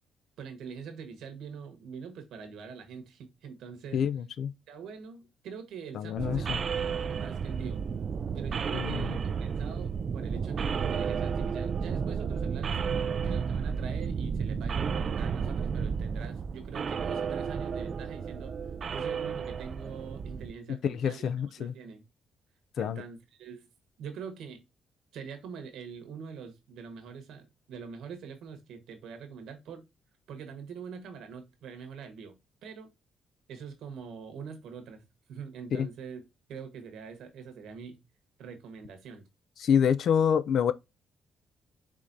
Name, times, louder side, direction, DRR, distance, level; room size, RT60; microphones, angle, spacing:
voice 1, 0.4-4.0 4.7-7.8 8.3-12.8 13.2-18.5 18.9-21.3 21.6-22.0 22.8-23.7 24.0-24.6 25.1-29.9 30.3-32.9 33.5-36.2 36.5-38.0 38.4-39.3, right 6 dB, 80° right, 1.3 m, -44 dB
voice 2, 3.9-4.5 5.9-6.6 8.7-9.2 20.8-21.7 22.8-23.0 35.7-35.9 39.6-40.7, left 8 dB, 65° left, 0.4 m, -27 dB
sound 1, 6.2-20.5, right 6 dB, 50° right, 0.3 m, -32 dB
4.9 x 3.6 x 2.6 m
cardioid pair, 90°, 0 cm